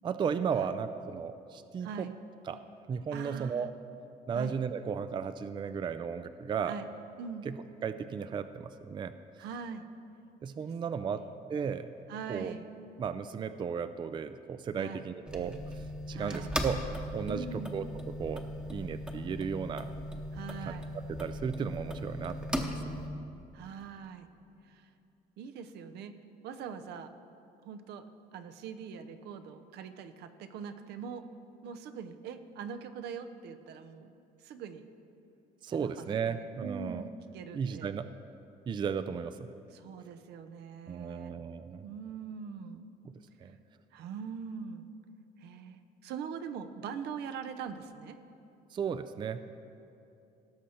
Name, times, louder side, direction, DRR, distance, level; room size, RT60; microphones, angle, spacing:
voice 1, 0.0-2.1 2.5-2.6 2.9-3.7 4.3-6.8 7.4-9.1 10.4-11.2 11.5-11.9 12.3-12.5 13.0-16.8 17.1-19.9 20.7-20.8 21.1-22.7 35.6-37.1 37.5-38.1 38.7-39.5 40.9-41.9 43.0-43.1 43.4-43.6 48.7-49.5, right 6 dB, 30° right, 12 dB, 0.3 m, -35 dB
voice 2, 1.8-2.2 3.1-3.7 4.3-4.5 6.7-6.9 7.2-7.5 9.4-9.9 10.9-11.3 12.1-12.7 14.8-15.1 16.1-16.6 17.2-17.8 20.3-21.0 23.5-24.3 24.6-24.9 25.4-26.2 26.4-27.1 27.6-28.1 28.3-31.2 31.6-34.1 34.4-34.9 35.7-37.9 39.7-41.3 41.8-42.9 43.9-44.9 45.4-48.2, right 6 dB, 75° right, 9 dB, 0.7 m, -42 dB
sound 1, 15.3-23.1, equal, 5° right, 0.9 m, -38 dB
17.5 x 6.4 x 4.3 m, 2.7 s
cardioid pair, 110°, 17 cm